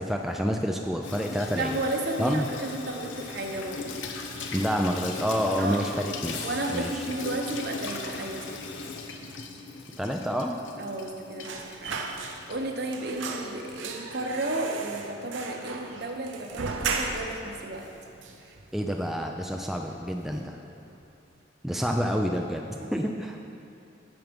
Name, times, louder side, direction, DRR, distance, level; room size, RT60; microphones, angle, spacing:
voice 1, 0.0-1.8 2.2-2.5 4.5-6.4 6.7-7.0 10.0-10.6 18.7-20.6 21.6-23.4, equal, ahead, 2 dB, 0.3 m, -28 dB
Water tap faucet / Sink (filling or washing), 1.0-18.5, left 3 dB, 85° left, 0.8 m, -41 dB
voice 2, 1.5-3.9 5.6-5.9 6.4-8.6 10.8-17.9 18.4-18.6 21.7-21.8 22.8-23.1, right 2 dB, 55° right, 3 dB, 0.9 m, -33 dB
sound 1, 6.3-10.5 11.8-11.9, left 4 dB, 60° left, 1.0 m, -48 dB
sound 2, 11.4-12.7 12.9-17.5 17.8-17.9 18.2-19.0 19.4-19.6 19.9-20.6 20.9-21.0, right 4 dB, 85° right, 0.7 m, -36 dB
9.1 x 7.1 x 5.2 m, 2.7 s
head